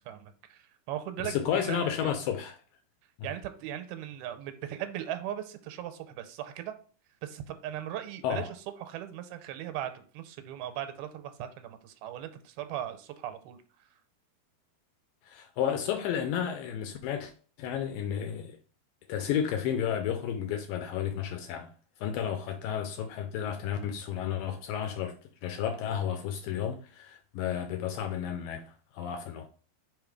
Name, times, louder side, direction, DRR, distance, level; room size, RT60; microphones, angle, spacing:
voice 1, 0.0-2.2 3.2-6.7 7.2-8.4 8.8-13.6, right 11 dB, 90° right, 2.5 m, -38 dB
voice 2, 1.2-2.6 8.2-8.5 15.3-17.3 17.6-18.6 19.1-21.7 22.0-25.2 25.4-29.5, left 9 dB, 80° left, 2.1 m, -32 dB
5.3 x 3.8 x 4.7 m
omnidirectional pair, 4.4 m